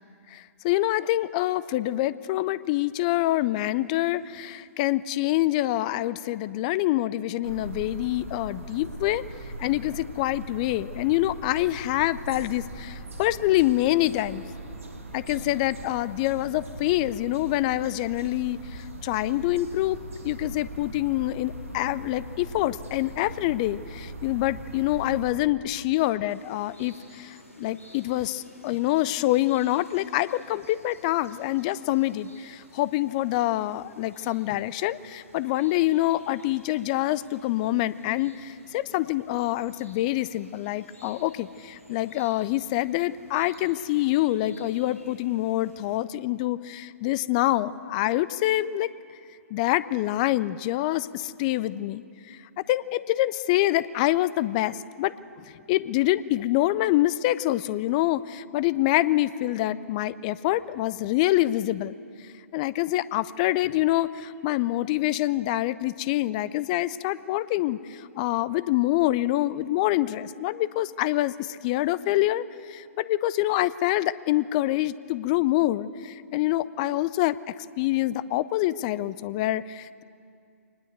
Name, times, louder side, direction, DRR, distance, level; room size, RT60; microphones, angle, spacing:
voice 1, 0.3-9.2 9.6-14.4 15.1-48.9 49.5-52.4 52.7-62.0 62.5-80.0, left 16 dB, 30° left, 18 dB, 0.5 m, -26 dB
sound 1, 7.4-25.3, right 2 dB, 65° right, 2.4 m, -40 dB
sound 2, 26.3-46.0, equal, 75° left, 5.9 m, -54 dB
23.5 x 20.0 x 8.0 m, 2.4 s
figure-of-eight pair, 120°, 8 cm